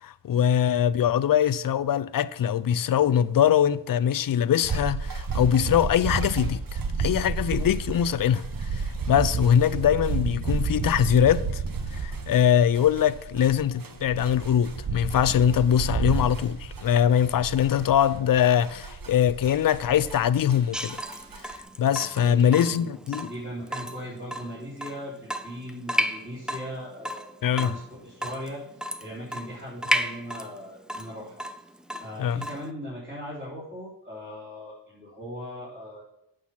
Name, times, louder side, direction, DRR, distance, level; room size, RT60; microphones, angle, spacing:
voice 1, 0.0-8.5 8.7-11.6 12.0-21.0 21.8-23.3 27.4-27.7 32.2-32.4, left 9 dB, 50° left, 0.5 m, -22 dB
sound 1, 4.6-20.6 20.9-21.5, right 5 dB, 50° right, 1.1 m, -31 dB
Water tap faucet / Drip, 20.7-32.7, equal, ahead, 0.5 m, -34 dB
voice 2, 22.2-28.6 29.0-31.4 32.0-36.0, equal, 20° right, 3.8 m, -39 dB
8.4 x 6.2 x 5.8 m
cardioid pair, 60°, 45 cm